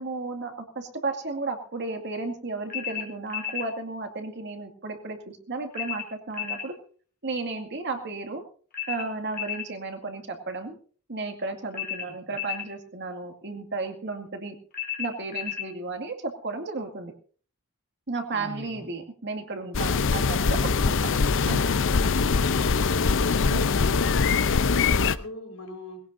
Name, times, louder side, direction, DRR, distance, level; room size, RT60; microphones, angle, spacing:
voice 1, 0.0-6.7 7.2-8.4 8.9-10.8 11.1-14.6 15.0-17.1 18.1-21.2 21.5-21.7 23.5-23.7, right 3 dB, 55° right, 5 dB, 2.3 m, -33 dB
sound 1, 2.7-3.7 5.7-6.7 8.7-9.7 11.7-12.7 14.7-15.7, left 10 dB, 45° left, 2.6 m, -33 dB
voice 2, 18.3-18.8 23.7-26.0, left 1 dB, 85° left, 1 dB, 4.7 m, -42 dB
sound 2, 19.7-25.2, left 5 dB, 60° left, 0.6 m, -23 dB
20.5 x 17.0 x 2.7 m, 0.43 s
head